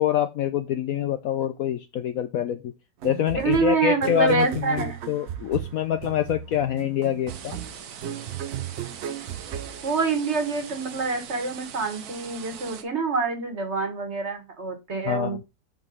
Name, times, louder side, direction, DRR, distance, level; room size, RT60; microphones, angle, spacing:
voice 1, 0.0-2.7 3.0-7.6 15.1-15.4, left 10 dB, 70° left, 9 dB, 0.9 m, -25 dB
sound 1, 3.0-10.6, right 10 dB, 85° right, 0.5 m, -36 dB
voice 2, 3.3-5.0 9.8-15.4, right 4 dB, 40° right, 5 dB, 1.5 m, -26 dB
sound 2, 7.3-12.8, right 8 dB, 65° right, 1.3 m, -41 dB
5.5 x 4.7 x 5.3 m, 0.26 s
omnidirectional pair, 1.9 m